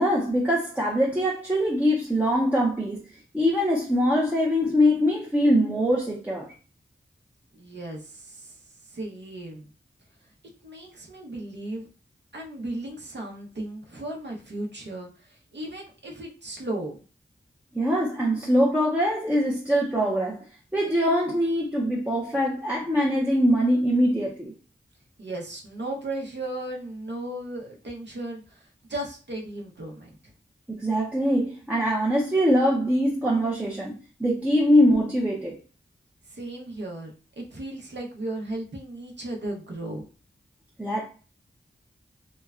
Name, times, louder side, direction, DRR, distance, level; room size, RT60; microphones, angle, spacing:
voice 1, 0.0-3.0 3.3-6.5 17.7-20.4 20.7-24.5 30.7-35.6 40.8-41.1, equal, 5° right, 0.6 m, -23 dB
voice 2, 7.5-8.5 8.8-9.7 10.6-11.9 12.3-17.0 25.2-30.2 36.3-37.1 37.4-40.0, right 1 dB, 60° right, 0.8 m, -35 dB
2.9 x 2.2 x 2.4 m
wide cardioid pair, 55°, 21 cm